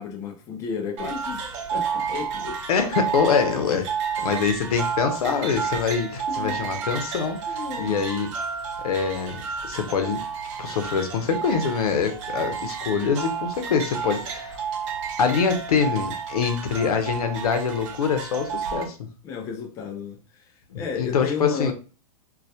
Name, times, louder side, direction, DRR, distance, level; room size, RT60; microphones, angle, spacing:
voice 1, 0.0-2.5 6.3-7.0 7.5-8.0 19.2-20.4 20.7-21.7, left 6 dB, 15° left, 0.3 m, -33 dB
sound 1, 1.0-18.8, right 6 dB, 55° right, 0.7 m, -31 dB
voice 2, 2.7-3.9 4.2-8.3 8.8-10.2 10.6-14.6 15.2-19.1 20.7-21.7, left 6 dB, 80° left, 0.7 m, -24 dB
2.2 x 2.1 x 2.7 m
hypercardioid pair, 145°, 19 cm